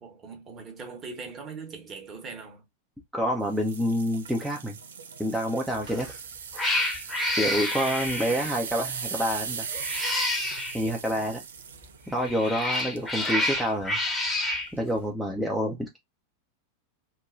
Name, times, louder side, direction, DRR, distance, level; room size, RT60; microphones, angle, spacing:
voice 1, 0.0-2.7 8.3-8.5, right 4 dB, 25° right, 1.0 m, -41 dB
voice 2, 3.1-4.8 5.2-6.1 7.4-9.7 10.7-11.4 12.1-14.0 14.7-16.0, equal, ahead, 0.6 m, -28 dB
sound 1, 3.5-13.4 13.9-14.1 14.7-14.8, right 6 dB, 65° right, 0.4 m, -38 dB
Cat, 5.8-6.1 6.5-8.6 9.7-10.8 12.1-14.7, left 1 dB, 15° left, 0.9 m, -29 dB
3.1 x 2.2 x 2.4 m
figure-of-eight pair, 90°, 0 cm